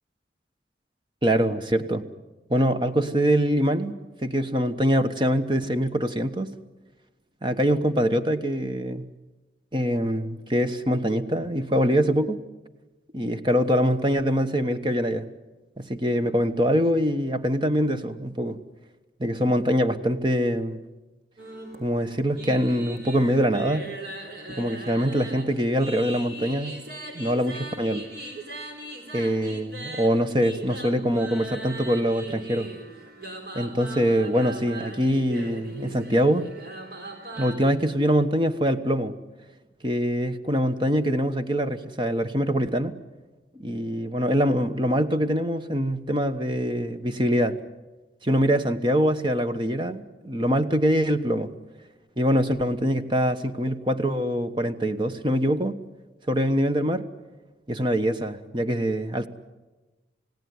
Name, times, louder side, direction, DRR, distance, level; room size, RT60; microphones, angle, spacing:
voice 1, 1.2-2.0 2.5-3.9 4.2-6.5 7.4-9.1 9.7-12.4 13.1-15.3 15.8-18.6 19.2-20.8 21.8-23.9 24.5-26.8 27.1-28.1 29.1-32.7 33.5-36.5 37.4-39.1 39.8-42.9 43.5-47.6 48.2-51.5 52.2-55.8 56.3-57.0 57.7-59.3, equal, 25° right, 10 dB, 1.2 m, -24 dB
sound 1, 21.4-37.6, right 2 dB, 60° right, 4.3 m, -39 dB
29.5 x 17.0 x 9.6 m, 1.2 s
head